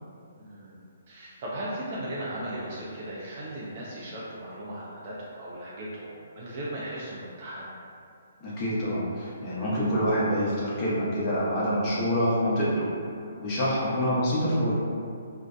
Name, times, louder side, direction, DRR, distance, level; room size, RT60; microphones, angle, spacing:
voice 1, 0.4-0.8 1.1-7.7 13.9-14.1, right 1 dB, 45° right, -7 dB, 0.4 m, -37 dB
voice 2, 8.4-12.9 13.4-14.7, equal, 35° left, -8 dB, 0.8 m, -26 dB
2.6 x 2.1 x 2.5 m, 2.4 s
hypercardioid pair, 145°, 0 cm